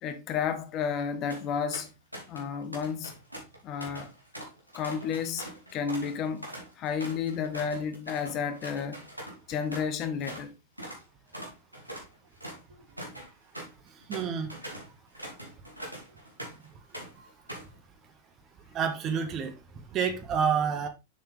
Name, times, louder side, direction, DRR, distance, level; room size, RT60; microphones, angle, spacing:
voice 1, 0.0-1.9 2.3-3.2 3.6-4.1 4.7-5.4 5.7-6.5 6.8-9.0 9.5-10.5, left 6 dB, 35° left, 1.2 m, -31 dB
sound 1, 1.3-1.4 1.7-2.5 2.7-10.5 10.8-11.0 11.3-16.7 16.9-17.8, right 1 dB, 90° right, 2.5 m, -43 dB
voice 2, 14.1-14.5 18.7-19.5 19.9-20.9, right 7 dB, 30° right, 1.6 m, -28 dB
7.2 x 6.5 x 3.4 m
figure-of-eight pair, 90°, 0 cm